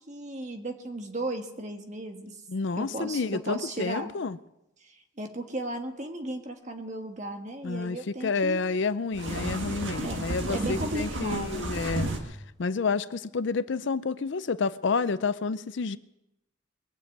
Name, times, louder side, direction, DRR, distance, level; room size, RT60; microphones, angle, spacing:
voice 1, 0.1-2.4 2.7-4.1 4.8-8.6 10.0-11.6, right 1 dB, 35° right, 4 dB, 1.5 m, -35 dB
voice 2, 2.5-4.4 7.6-16.0, left 4 dB, 60° left, 15 dB, 0.5 m, -29 dB
sound 1, 9.1-12.2, right 1 dB, 60° right, 1.8 m, -32 dB
22.0 x 7.3 x 8.3 m, 0.89 s
head